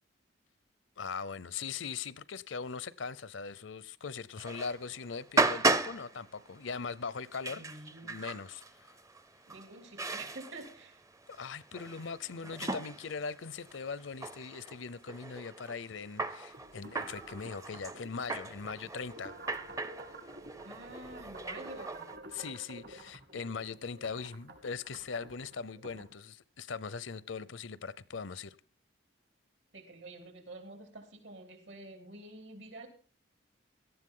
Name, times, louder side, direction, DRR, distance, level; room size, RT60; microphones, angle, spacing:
voice 1, 1.0-8.9 11.3-19.3 22.3-28.6, left 5 dB, 80° left, 0.7 m, -40 dB
sound 1, 4.4-22.2, right 3 dB, 15° right, 0.5 m, -36 dB
voice 2, 7.5-8.1 9.5-11.0 20.6-22.1 29.7-32.9, right 2 dB, 70° right, 3.2 m, -48 dB
sound 2, 16.5-26.1, right 1 dB, 55° right, 2.2 m, -50 dB
17.5 x 12.5 x 3.8 m
head